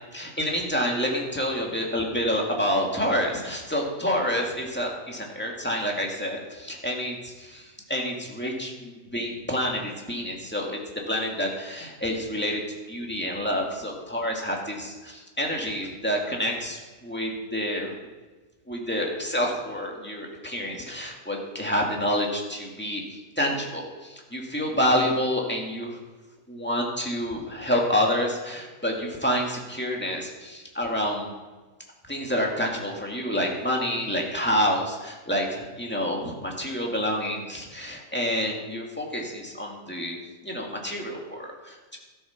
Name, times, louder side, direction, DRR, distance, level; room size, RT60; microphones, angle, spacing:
voice 1, 0.1-12.6 12.9-17.9 18.7-26.0 26.5-31.3 32.1-40.2 40.4-42.0, equal, 5° left, -1 dB, 1.9 m, -28 dB
13.0 x 8.0 x 5.9 m, 1.3 s
omnidirectional pair, 1.6 m